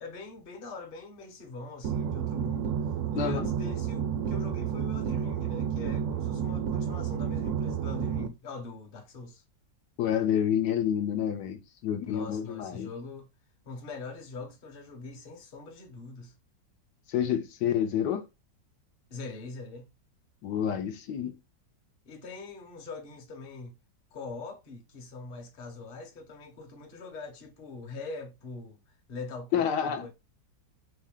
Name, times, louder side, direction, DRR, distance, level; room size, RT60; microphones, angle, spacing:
voice 1, 0.0-2.7 3.1-9.4 12.0-13.3 13.7-16.3 19.1-19.9 22.0-23.7 24.1-30.1, left 3 dB, 40° left, 0.8 m, -43 dB
sound 1, 1.8-8.3, right 8 dB, 70° right, 0.9 m, -30 dB
voice 2, 3.1-3.5 10.0-12.9 17.1-18.3 20.4-21.3 29.5-30.1, left 9 dB, 75° left, 1.2 m, -28 dB
3.3 x 2.6 x 3.6 m
omnidirectional pair, 1.9 m